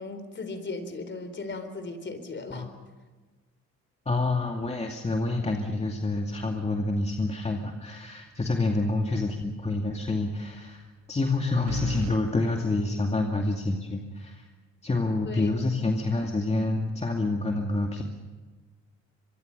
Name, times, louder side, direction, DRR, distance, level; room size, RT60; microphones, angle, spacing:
voice 1, 0.0-2.6 15.3-15.5, left 3 dB, 40° left, 9 dB, 4.0 m, -37 dB
voice 2, 4.1-10.8 11.1-14.5 14.8-18.0, left 2 dB, 20° left, 2 dB, 2.3 m, -27 dB
sound 1, 9.4-9.5 11.7-12.2, right 9 dB, 55° right, 1.3 m, -37 dB
25.0 x 23.0 x 6.7 m, 1.3 s
cardioid pair, 90°, 30 cm